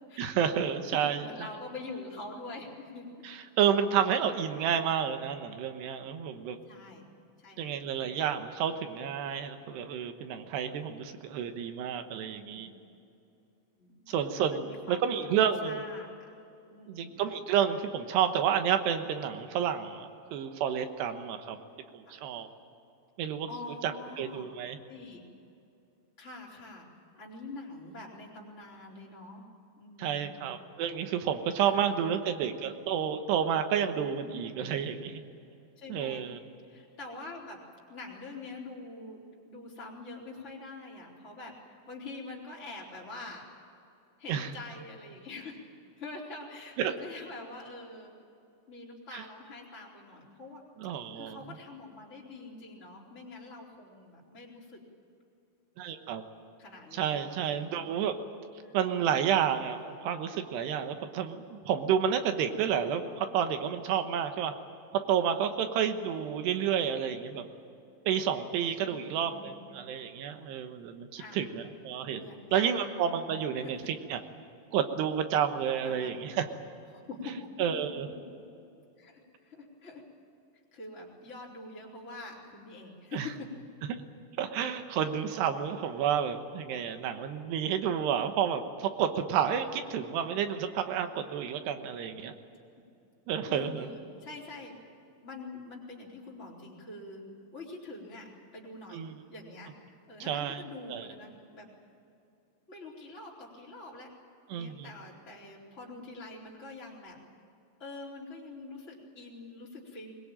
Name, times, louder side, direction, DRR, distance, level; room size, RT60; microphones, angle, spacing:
voice 1, 0.2-1.2 3.2-6.6 7.6-12.7 14.1-15.8 16.9-21.6 21.9-22.5 23.2-23.5 23.8-24.8 30.0-35.2 35.9-36.4 44.3-44.5 46.8-46.9 49.1-49.2 50.8-51.4 55.8-56.2 56.9-58.1 58.7-64.5 65.1-67.5 68.1-74.2 74.7-76.5 77.6-78.1 83.1-83.3 84.4-92.3 93.3-93.9 98.9-99.2 100.2-100.6 100.9-101.1 104.5-104.9, right 8 dB, 80° right, 7 dB, 3.3 m, -30 dB
voice 2, 1.0-3.3 6.7-7.1 7.4-7.7 12.2-12.7 13.8-14.1 14.5-16.3 16.7-17.2 22.1-22.2 23.5-24.5 24.8-25.2 26.2-26.9 27.1-29.5 29.8-30.4 31.7-32.4 34.1-34.6 35.8-36.3 36.7-37.6 37.9-43.5 44.2-45.6 46.0-48.1 48.7-50.6 50.9-54.8 56.6-58.1 58.6-58.9 68.8-69.6 71.2-71.4 72.1-72.8 73.6-73.8 75.8-76.2 76.9-77.5 79.0-80.0 80.7-83.5 93.5-94.8 95.2-97.3 97.5-99.7 100.1-101.7 102.7-104.1 104.5-107.2 107.8-110.1, left 3 dB, 15° left, -4 dB, 4.0 m, -45 dB
22.0 x 21.5 x 8.9 m, 2.6 s
omnidirectional pair, 4.8 m